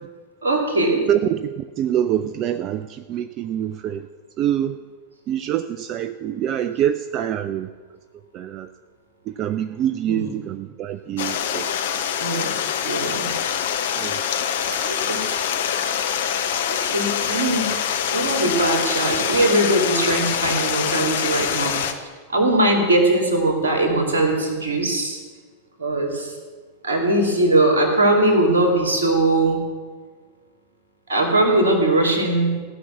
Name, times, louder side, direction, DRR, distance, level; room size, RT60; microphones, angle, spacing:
voice 1, 0.4-1.1 10.1-10.3 12.2-12.5 12.8-13.3 14.8-15.2 16.7-17.7 18.1-22.0 22.3-25.2 25.8-26.3 26.8-29.6 31.1-32.5, right 2 dB, 70° right, 2 dB, 2.6 m, -20 dB
voice 2, 1.1-4.1 4.4-4.8 5.3-7.7 8.3-8.7 9.3-11.7 13.9-14.2, right 10 dB, 35° right, 12 dB, 0.4 m, -25 dB
Stream, 11.2-21.9, left 8 dB, 60° left, 0.9 m, -24 dB
16.5 x 6.1 x 8.1 m, 1.5 s
figure-of-eight pair, 90°, 0 cm